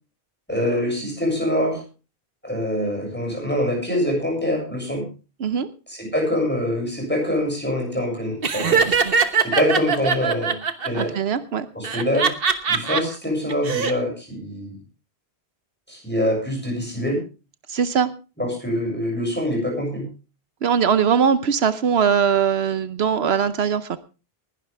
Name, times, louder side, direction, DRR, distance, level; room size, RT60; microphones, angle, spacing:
voice 1, 0.5-1.8 2.4-5.0 5.9-11.2 11.8-14.7 15.9-17.2 18.4-20.0, left 1 dB, 10° left, 0 dB, 6.9 m, -25 dB
Laughter, 8.4-11.0 11.8-13.0 13.5-13.9, right 5 dB, 65° right, 1.4 m, -21 dB
voice 2, 10.9-11.7 17.7-18.1 20.6-24.0, right 7 dB, 80° right, 12 dB, 1.1 m, -21 dB
20.0 x 11.5 x 3.4 m, 0.32 s
omnidirectional pair, 1.1 m